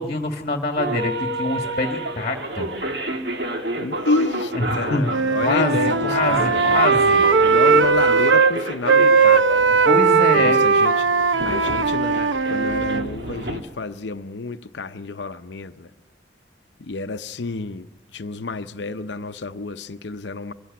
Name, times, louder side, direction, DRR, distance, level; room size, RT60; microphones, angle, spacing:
voice 1, 0.0-2.7 4.5-5.1 5.4-7.2 9.8-10.6, left 2 dB, 35° left, 1.7 m, -25 dB
sound 1, 0.8-13.6, right 1 dB, 60° right, 1.7 m, -30 dB
voice 2, 3.8-7.0 7.4-9.5 10.3-11.1 11.4-15.9 16.8-17.9 18.1-20.5, left 3 dB, 70° left, 0.7 m, -29 dB
Wind instrument woodwind instrument, 5.0-8.5 8.9-13.1, right 5 dB, 90° right, 0.8 m, -18 dB
23.0 x 16.0 x 9.4 m
head